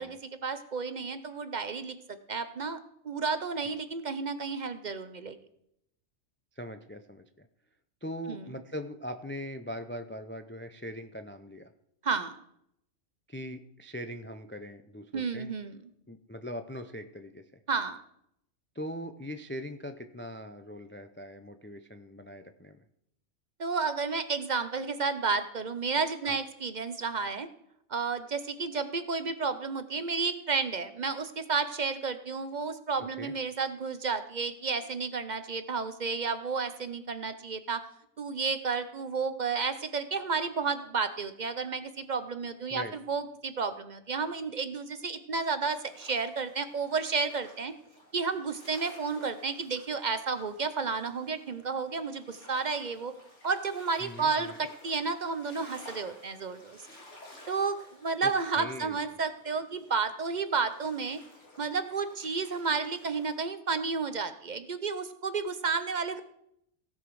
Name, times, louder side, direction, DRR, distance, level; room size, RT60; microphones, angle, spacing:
voice 1, 0.0-2.8 3.0-5.4 8.3-8.5 12.0-12.4 15.1-15.8 17.7-18.0 23.6-27.5 27.9-37.8 38.2-47.7 48.1-53.1 53.4-56.8 57.5-61.2 61.6-66.2, right 4 dB, 45° right, 11 dB, 0.7 m, -32 dB
voice 2, 6.6-7.5 8.0-11.6 13.3-15.5 16.1-17.6 18.7-22.8 26.2-26.4 33.0-33.3 42.7-42.9 54.0-54.6 58.2-58.3 58.6-59.0, equal, 20° left, 8 dB, 0.3 m, -41 dB
sound 1, 45.9-63.4, left 1 dB, 80° left, 2.8 m, -54 dB
16.5 x 6.1 x 4.8 m, 0.75 s
omnidirectional pair, 1.2 m